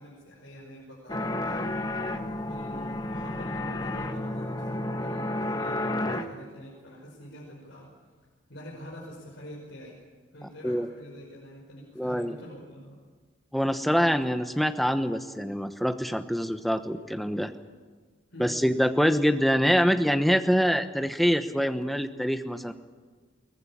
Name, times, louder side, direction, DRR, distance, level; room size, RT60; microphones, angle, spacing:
voice 1, 0.0-1.8 2.4-7.9 8.5-10.0 10.3-13.0 18.3-18.6, equal, 65° left, -4 dB, 5.3 m, -45 dB
sound 1, 1.1-6.3, left 1 dB, 20° left, 1.3 m, -31 dB
voice 2, 12.0-12.3 13.5-17.5 18.4-22.7, equal, ahead, 8 dB, 1.0 m, -25 dB
22.5 x 19.5 x 8.6 m, 1.5 s
head